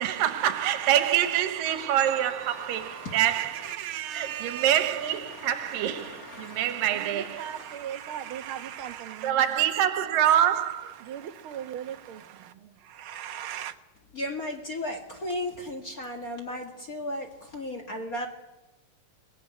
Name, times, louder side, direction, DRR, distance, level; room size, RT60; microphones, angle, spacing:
voice 1, 0.0-7.6 9.2-11.0, right 11 dB, 85° right, 2.8 m, -26 dB
voice 2, 0.6-1.1 1.7-5.4 6.4-9.4 11.0-13.8, right 10 dB, 60° right, 1.4 m, -39 dB
voice 3, 2.4-3.6 4.4-4.6 5.3-7.9 14.1-18.3, left 1 dB, 35° left, 1.7 m, -37 dB
23.0 x 19.5 x 9.5 m
omnidirectional pair, 3.9 m